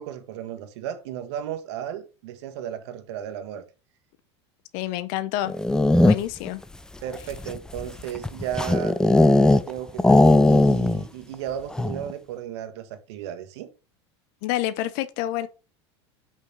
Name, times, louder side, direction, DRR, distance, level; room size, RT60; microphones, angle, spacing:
voice 1, 0.0-3.6 7.0-9.0 9.5-13.7, right 10 dB, 70° right, 1.5 m, -34 dB
voice 2, 4.7-5.5 6.0-6.6 14.4-15.5, left 14 dB, 60° left, 0.9 m, -28 dB
sound 1, 5.5-6.5 7.1-9.7 10.0-11.1 11.3-11.4 11.7-12.1, left 2 dB, 5° left, 0.5 m, -18 dB
6.0 x 5.5 x 6.1 m
supercardioid pair, 125°, 14 cm